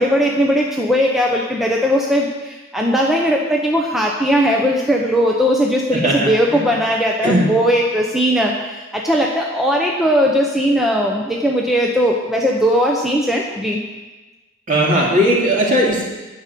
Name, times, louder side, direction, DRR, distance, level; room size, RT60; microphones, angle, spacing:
voice 1, 0.0-13.8, equal, ahead, -1 dB, 0.9 m, -18 dB
voice 2, 5.9-6.7 7.2-7.5 14.7-16.1, equal, 40° right, -3 dB, 2.9 m, -17 dB
11.5 x 6.6 x 8.4 m, 1.2 s
head